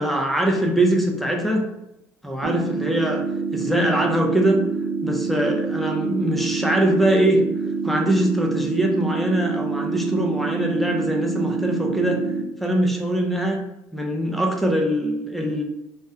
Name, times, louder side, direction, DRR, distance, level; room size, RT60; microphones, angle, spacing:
voice 1, 0.0-1.7 2.2-3.2 3.5-4.6 5.0-7.5 7.8-12.2 12.6-13.6 13.9-15.6, right 1 dB, ahead, 1 dB, 0.6 m, -22 dB
sound 1, 2.4-12.4, right 4 dB, 70° right, 0.8 m, -26 dB
3.3 x 2.1 x 2.8 m, 0.88 s
supercardioid pair, 80°, 8 cm